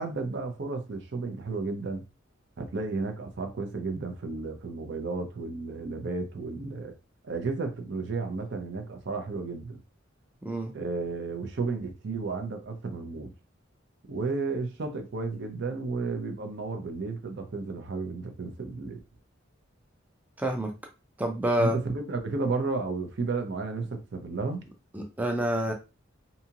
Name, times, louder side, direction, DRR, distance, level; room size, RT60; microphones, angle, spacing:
voice 1, 0.0-2.0 2.6-6.9 7.2-9.8 10.7-13.3 14.1-19.0 21.6-24.6, right 3 dB, 65° right, 0.6 m, -33 dB
voice 2, 10.4-10.7 20.4-20.7 21.2-21.8 24.9-25.7, right 1 dB, 10° right, 0.4 m, -28 dB
2.7 x 2.4 x 2.8 m
head